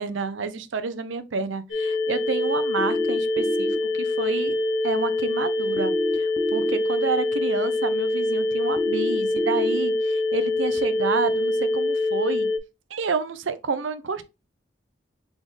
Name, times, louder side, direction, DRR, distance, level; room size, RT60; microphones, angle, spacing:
voice 1, 0.0-3.7 4.0-4.5 4.8-12.5 12.9-14.2, right 5 dB, 75° right, 0.6 m, -29 dB
sound 1, 1.7-12.6, left 2 dB, 80° left, 1.0 m, -25 dB
sound 2, 2.8-3.8 5.8-6.8 8.8-9.8, left 1 dB, 10° right, 0.6 m, -28 dB
4.2 x 3.7 x 3.2 m
head